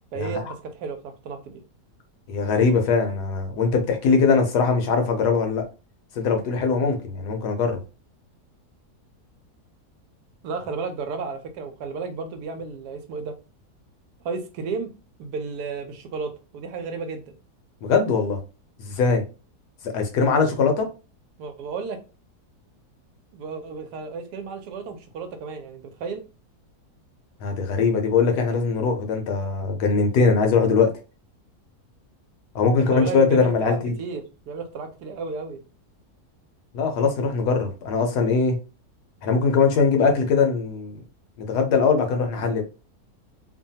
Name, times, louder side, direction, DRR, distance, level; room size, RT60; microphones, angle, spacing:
voice 1, 0.1-1.5 10.4-13.4 14.2-14.9 15.2-17.3 21.4-22.0 23.3-26.2 32.7-35.6, right 4 dB, 85° right, 1.2 m, -33 dB
voice 2, 2.3-5.6 6.2-7.8 17.8-18.4 18.8-19.2 19.8-20.9 27.4-30.9 32.5-33.9 36.7-38.6 39.2-41.0 41.4-42.6, left 5 dB, 85° left, 1.3 m, -21 dB
3.1 x 2.2 x 2.7 m
omnidirectional pair, 1.7 m